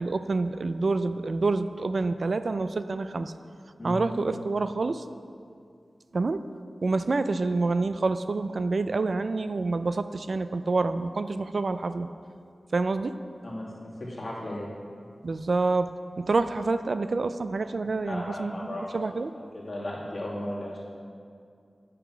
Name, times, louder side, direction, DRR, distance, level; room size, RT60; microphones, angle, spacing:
voice 1, 0.0-3.3 3.8-5.0 6.1-6.4 6.8-12.1 12.7-13.1 15.2-15.9 16.2-19.3, right 3 dB, 60° right, 11 dB, 0.3 m, -27 dB
voice 2, 3.8-4.1 13.4-13.7 14.0-14.7 18.0-18.9 19.5-20.8, left 1 dB, 45° left, -6 dB, 2.2 m, -35 dB
8.3 x 5.8 x 6.0 m, 2.3 s
wide cardioid pair, 100°, 0 cm